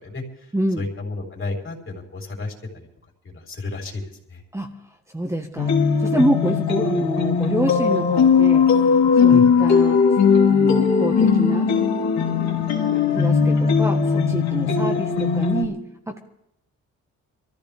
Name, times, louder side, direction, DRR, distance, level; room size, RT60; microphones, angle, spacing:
voice 1, 0.0-2.9 3.2-4.0 4.3-4.4 9.3-9.5, left 3 dB, 40° left, 1 dB, 4.1 m, -32 dB
voice 2, 0.5-0.8 4.5-4.7 5.1-5.7 6.0-8.7 9.2-10.0 10.5-11.7 12.3-16.2, right 1 dB, 10° right, 3 dB, 1.4 m, -26 dB
sound 1, 5.6-15.6, left 6 dB, 65° left, 2.9 m, -18 dB
23.0 x 14.5 x 3.5 m, 0.81 s
cardioid pair, 90°, 30 cm